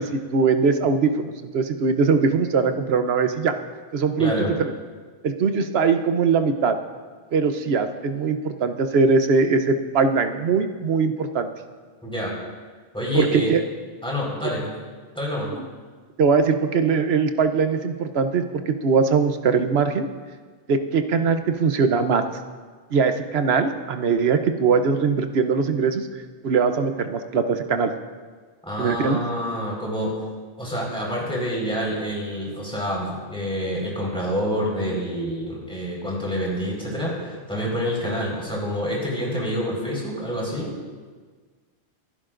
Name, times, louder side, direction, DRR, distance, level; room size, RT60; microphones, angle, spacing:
voice 1, 0.3-3.5 3.9-4.7 5.2-6.8 7.3-11.5 13.1-13.6 16.2-20.1 20.7-22.2 22.9-26.1 26.4-27.9 28.8-29.2, right 5 dB, 65° right, 8 dB, 1.0 m, -21 dB
voice 2, 4.2-4.5 12.0-12.3 12.9-13.5 14.0-14.7 15.1-15.5 28.7-30.2 30.6-40.7, equal, 5° left, -4 dB, 4.5 m, -27 dB
24.0 x 11.0 x 2.6 m, 1.5 s
omnidirectional pair, 1.2 m